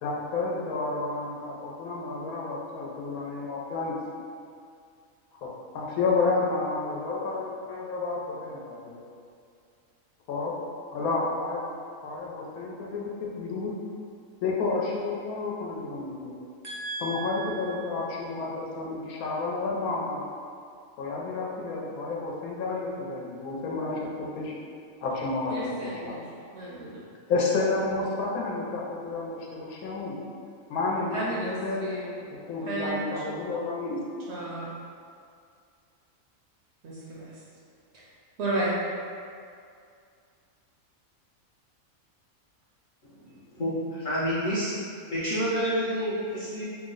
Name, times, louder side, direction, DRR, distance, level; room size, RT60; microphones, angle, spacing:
voice 1, 0.0-3.9 5.4-5.5 5.7-9.0 10.3-10.5 10.9-11.6 12.0-13.7 14.4-16.3 17.0-20.2 21.0-24.5 25.0-26.2 27.3-30.2 30.7-31.8 32.3-34.0, left 3 dB, 85° left, -3 dB, 1.1 m, -30 dB
voice 2, 16.6-17.5 25.5-26.2 26.5-27.0 31.1-32.1 32.7-33.1 34.3-34.7 36.8-37.3 37.9-38.0 38.4-38.8, right 2 dB, 65° right, -6 dB, 0.7 m, -33 dB
voice 3, 44.0-44.7 45.1-46.6, equal, 55° left, -10 dB, 0.5 m, -28 dB
2.9 x 2.1 x 3.7 m, 2.3 s
omnidirectional pair, 1.5 m